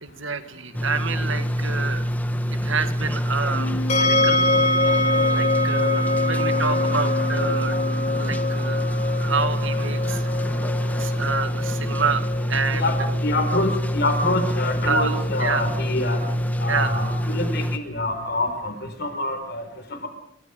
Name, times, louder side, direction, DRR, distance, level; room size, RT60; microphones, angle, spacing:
voice 1, 0.0-2.0 2.6-4.4 5.3-7.8 8.2-8.9 9.2-10.3 11.0-13.2 14.9-15.7 16.7-17.1, right 5 dB, 70° right, 10 dB, 1.9 m, -28 dB
sound 1, 0.7-17.8, equal, 10° left, 1.2 m, -26 dB
sound 2, 3.4-8.9, left 1 dB, 85° left, 3.0 m, -32 dB
sound 3, 3.9-16.9, left 2 dB, 35° left, 2.6 m, -26 dB
voice 2, 12.7-16.2 16.6-18.7 19.0-19.6, left 2 dB, 50° left, 7 dB, 4.6 m, -26 dB
26.0 x 24.5 x 5.1 m, 0.69 s
head